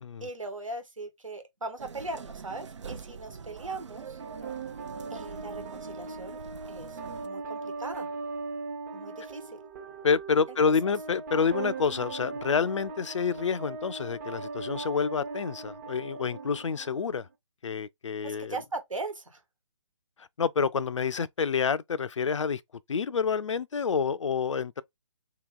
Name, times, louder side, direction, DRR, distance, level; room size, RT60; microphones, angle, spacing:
voice 1, 0.2-4.2 5.1-6.4 6.7-8.1 8.9-9.6 10.5-10.6 18.2-19.4, right 2 dB, 85° right, 1.3 m, -39 dB
sound 1, 1.8-7.3, right 6 dB, 65° right, 0.5 m, -44 dB
sound 2, 4.2-17.2, right 4 dB, 30° right, 0.8 m, -39 dB
voice 2, 10.0-17.3 17.6-18.6 20.2-22.6 22.9-24.8, left 5 dB, 70° left, 0.5 m, -28 dB
3.0 x 2.8 x 3.7 m
figure-of-eight pair, 140°, 16 cm